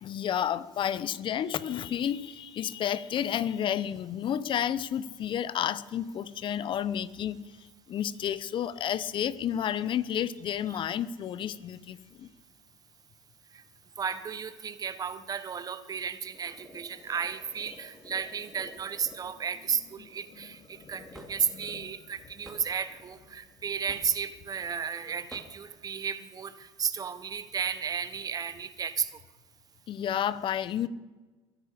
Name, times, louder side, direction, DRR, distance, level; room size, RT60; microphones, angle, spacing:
voice 1, 0.0-7.5 7.9-12.3 21.5-21.6 29.9-30.9, left 9 dB, 50° left, 18 dB, 0.8 m, -31 dB
voice 2, 14.0-29.1, right 6 dB, 35° right, 13 dB, 1.2 m, -33 dB
sound 1, 16.3-24.3, left 2 dB, 25° left, 4.4 m, -53 dB
Hammer / Wood, 21.1-21.3 22.4-22.6 23.9-24.2 25.3-25.5, equal, ahead, 2.9 m, -47 dB
22.5 x 9.9 x 5.2 m, 1.2 s
supercardioid pair, 95°, 11 cm